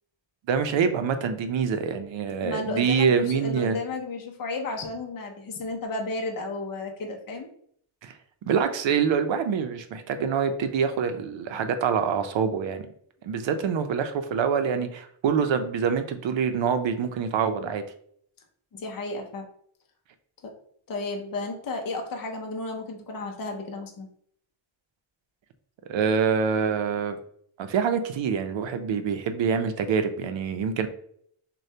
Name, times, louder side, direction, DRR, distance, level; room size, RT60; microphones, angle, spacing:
voice 1, 0.5-3.8 8.0-8.1 8.4-12.9 13.2-17.8 25.9-27.2 27.6-30.9, right 6 dB, 65° right, 9 dB, 0.6 m, -25 dB
voice 2, 2.4-7.5 18.7-19.5 20.4-20.5 20.9-24.1, left 3 dB, 45° left, 2 dB, 0.7 m, -33 dB
6.4 x 2.3 x 2.8 m, 0.65 s
wide cardioid pair, 175°, 48 cm